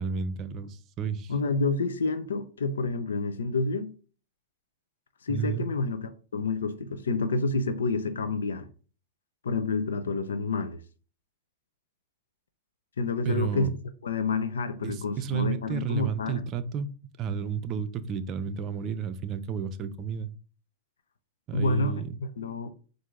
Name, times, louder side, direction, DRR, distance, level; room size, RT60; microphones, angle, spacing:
voice 1, 0.0-1.3 5.3-5.7 13.2-13.7 14.8-16.9 17.2-20.3 21.5-22.2, right 6 dB, 35° right, 0.5 m, -32 dB
voice 2, 1.3-3.9 5.2-8.7 9.4-10.8 13.0-13.7 14.0-16.4 21.5-22.7, left 3 dB, 85° left, 0.5 m, -29 dB
4.4 x 2.6 x 3.7 m
hypercardioid pair, 115°, 0 cm